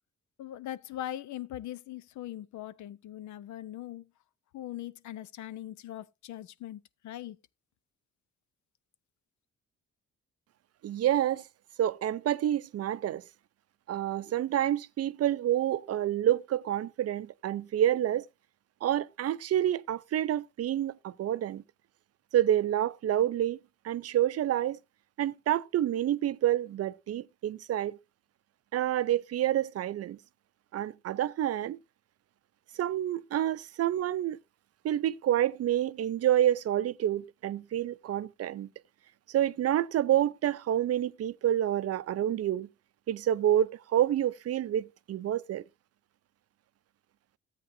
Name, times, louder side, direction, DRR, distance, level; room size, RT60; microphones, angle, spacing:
voice 1, 0.4-4.0 4.5-7.4, left 12 dB, 70° left, 0.6 m, -41 dB
voice 2, 10.8-11.4 11.8-13.2 13.9-18.3 18.8-21.6 22.3-23.6 23.8-24.8 25.2-28.0 28.7-30.2 30.7-31.8 32.8-34.4 34.8-38.7 39.3-42.7 43.1-45.6, right 11 dB, 55° right, 0.5 m, -28 dB
13.5 x 8.2 x 2.6 m
cardioid pair, 90°, 30 cm